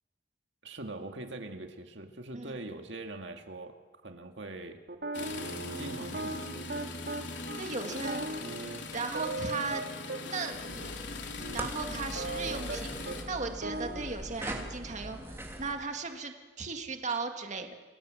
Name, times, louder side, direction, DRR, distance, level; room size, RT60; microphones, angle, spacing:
voice 1, 0.6-4.8 5.8-6.4, right 2 dB, 80° right, 5 dB, 2.1 m, -42 dB
sound 1, 4.9-10.2 10.7-10.9 11.4-12.8 13.1-13.2 13.5-14.0, right 2 dB, 65° right, 3.1 m, -38 dB
sound 2, 5.1-13.2, left 3 dB, 75° left, 3.3 m, -41 dB
voice 2, 7.6-8.5 8.9-9.8 10.2-10.6 11.5-12.9 13.3-17.7, right 4 dB, 40° right, 4 dB, 2.1 m, -36 dB
sound 3, 10.5-15.7, right 1 dB, 15° right, 3.2 m, -42 dB
29.0 x 23.0 x 7.7 m, 1.4 s
head